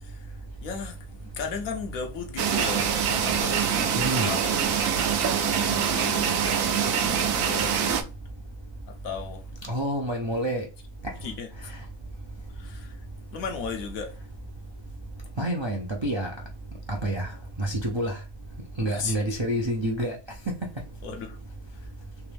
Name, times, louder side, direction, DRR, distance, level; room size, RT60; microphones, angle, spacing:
voice 1, 0.0-0.3 0.6-4.8 5.4-8.1 8.9-9.5 11.2-11.7 12.5-13.0 13.3-14.2 18.9-19.2 21.0-21.4, left 5 dB, 75° left, 1.2 m, -36 dB
sound 1, 2.4-8.0, right 7 dB, 75° right, 1.1 m, -25 dB
voice 2, 4.0-4.3 9.7-10.7 15.4-16.3 16.9-17.3 17.6-18.2 18.8-20.2, right 1 dB, 40° right, 0.4 m, -28 dB
3.4 x 3.0 x 3.3 m
omnidirectional pair, 1.5 m